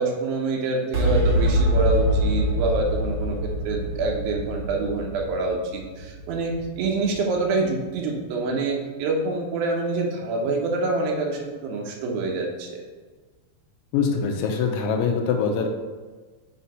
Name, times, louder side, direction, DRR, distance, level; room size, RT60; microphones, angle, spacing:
voice 1, 0.0-12.8, right 3 dB, 80° right, 0 dB, 2.7 m, -26 dB
sound 1, 0.9-7.6, equal, 55° right, 3.0 m, -25 dB
voice 2, 13.9-15.7, left 5 dB, 80° left, 3 dB, 2.3 m, -23 dB
7.2 x 2.8 x 5.4 m, 1.4 s
omnidirectional pair, 4.2 m